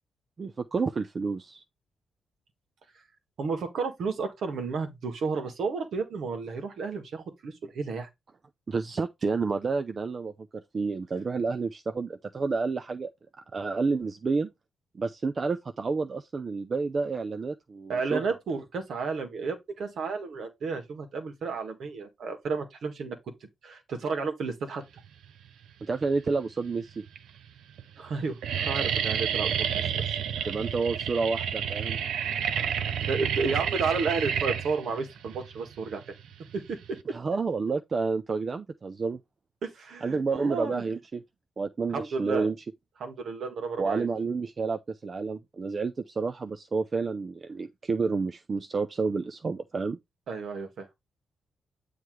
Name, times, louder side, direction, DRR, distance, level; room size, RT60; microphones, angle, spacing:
voice 1, 0.4-1.6 8.7-13.1 13.5-14.5 14.9-18.2 25.8-27.0 30.5-32.0 37.1-39.2 40.0-41.2 41.6-42.6 43.8-50.0, right 4 dB, 45° right, 0.6 m, -30 dB
voice 2, 3.4-8.1 17.9-23.2 23.6-24.8 28.0-30.1 30.4-30.5 33.0-36.0 36.5-37.1 39.6-40.8 41.9-42.5 43.0-44.1 50.3-50.9, right 4 dB, 70° right, 1.7 m, -32 dB
sound 1, 25.8-26.4 27.1-27.2 27.4-27.8 28.1-37.0, right 8 dB, 85° right, 0.6 m, -30 dB
7.6 x 3.3 x 4.7 m
cardioid pair, 75°, 0 cm